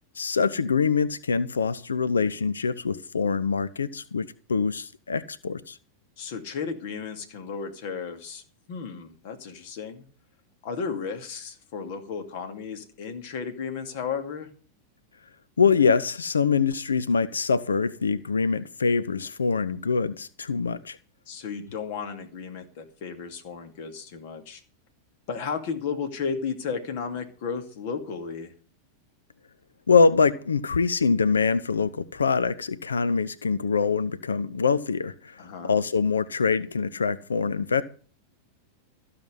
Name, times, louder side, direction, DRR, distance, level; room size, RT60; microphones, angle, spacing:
voice 1, 0.2-5.8 15.6-21.0 29.9-37.8, left 5 dB, 70° left, 0.6 m, -24 dB
voice 2, 6.2-8.4 8.7-10.1 10.6-14.5 21.3-24.6 25.3-28.5 35.4-35.8, left 6 dB, 50° left, 2.5 m, -34 dB
14.0 x 5.8 x 9.5 m
figure-of-eight pair, 90°, 0 cm